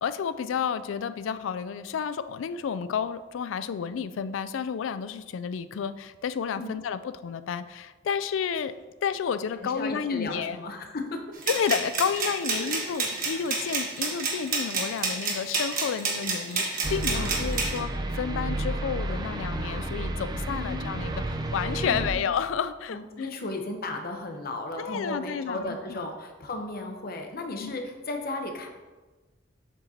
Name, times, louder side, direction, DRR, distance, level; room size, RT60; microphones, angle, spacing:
voice 1, 0.0-8.7 9.0-10.6 11.5-23.3 24.8-26.0 27.6-27.7, left 7 dB, 85° left, 13 dB, 0.3 m, -31 dB
voice 2, 9.6-11.2 12.4-12.7 17.1-17.4 20.5-20.9 21.8-22.3 22.9-28.7, left 2 dB, 50° left, 4 dB, 0.8 m, -35 dB
sound 1, 11.4-17.8, right 4 dB, 50° right, 1.4 m, -29 dB
sound 2, 16.8-22.1, right 2 dB, 20° right, 0.4 m, -31 dB
7.3 x 6.5 x 2.8 m, 1.3 s
head